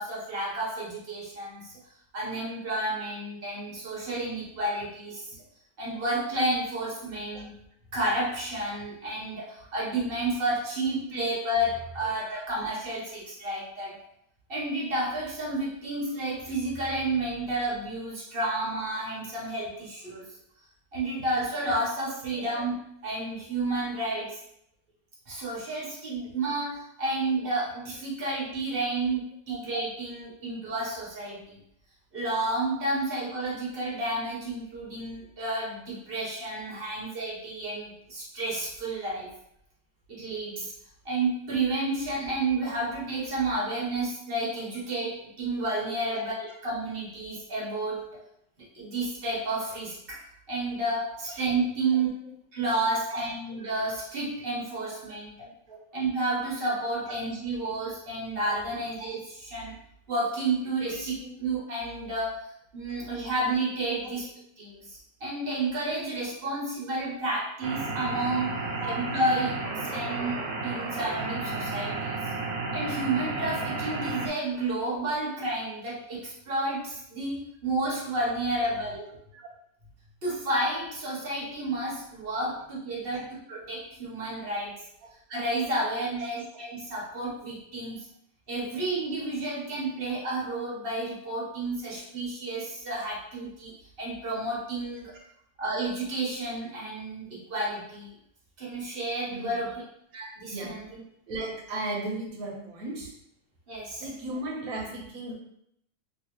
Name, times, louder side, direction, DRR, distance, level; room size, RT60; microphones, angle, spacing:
voice 1, 0.0-1.7 2.1-5.3 5.8-7.5 7.9-14.0 14.5-20.3 20.9-24.4 25.3-31.6 32.1-39.3 40.1-40.7 41.0-46.4 46.6-48.1 48.7-50.2 50.5-52.1 52.5-55.3 55.9-59.7 60.1-62.4 62.7-64.3 64.6-68.6 68.8-72.2 72.7-77.4 77.6-79.1 80.2-84.8 85.3-88.1 88.5-93.7 94.0-95.2 95.6-98.1 98.6-99.7 100.1-101.0 103.7-104.1, right 2 dB, 40° right, -5 dB, 1.0 m, -31 dB
voice 2, 12.0-12.4 12.9-13.0 22.3-22.4 26.2-26.3 29.5-29.6 46.1-46.2 52.0-52.3 53.1-53.3 55.7-55.8 58.4-58.6 61.2-61.3 68.8-69.0 78.6-78.7 79.3-79.5 83.1-83.3 99.3-99.6 100.5-100.8 101.3-103.1 104.0-105.3, right 2 dB, 60° right, -2 dB, 1.3 m, -36 dB
sound 1, 67.6-74.3, right 3 dB, 85° right, 1.3 m, -32 dB
3.1 x 3.0 x 3.0 m, 0.72 s
omnidirectional pair, 1.8 m